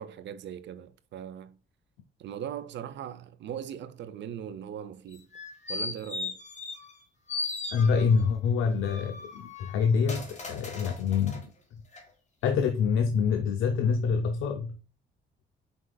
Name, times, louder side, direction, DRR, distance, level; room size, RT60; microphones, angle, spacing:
voice 1, 0.0-1.6 2.2-5.3 5.7-6.4, right 9 dB, 65° right, 0.6 m, -39 dB
sound 1, 5.1-7.0 7.3-8.3 8.8-11.4 11.9-12.0, left 3 dB, 35° left, 1.5 m, -37 dB
voice 2, 7.7-11.8 12.4-14.8, left 6 dB, 85° left, 0.6 m, -26 dB
5.3 x 3.7 x 2.2 m
cardioid pair, 90°, 20 cm